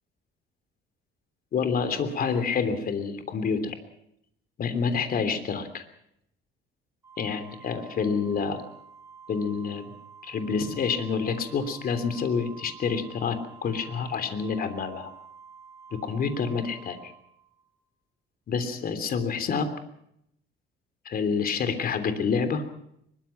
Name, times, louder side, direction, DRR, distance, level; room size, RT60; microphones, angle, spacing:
voice 1, 1.5-3.8 4.6-5.8 7.2-8.6 9.3-9.8 10.2-15.1 15.9-17.0 18.5-19.7 21.0-22.6, left 5 dB, 50° left, 10 dB, 3.3 m, -28 dB
Organ, 7.0-17.8, right 6 dB, 15° right, 2.3 m, -49 dB
23.0 x 22.0 x 5.9 m, 0.75 s
cardioid pair, 130°, 20 cm